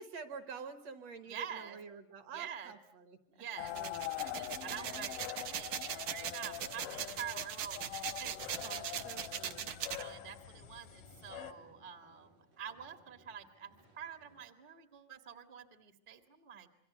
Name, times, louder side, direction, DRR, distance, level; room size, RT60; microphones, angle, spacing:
voice 1, 0.0-4.1 4.6-5.1 8.6-9.7 16.5-16.7, right 5 dB, 60° right, 9 dB, 2.4 m, -49 dB
voice 2, 1.3-1.8 2.3-2.7 3.3-3.7 4.2-8.4 8.6-9.1 9.8-16.7, right 8 dB, 25° right, 7 dB, 1.0 m, -47 dB
sound 1, 3.6-11.5, left 13 dB, 75° left, 2.7 m, -44 dB
sound 2, 3.7-10.0, right 9 dB, 75° right, 2.6 m, -40 dB
sound 3, 6.9-14.4, right 1 dB, 90° right, 6.7 m, -65 dB
27.0 x 23.5 x 7.8 m, 0.72 s
omnidirectional pair, 3.8 m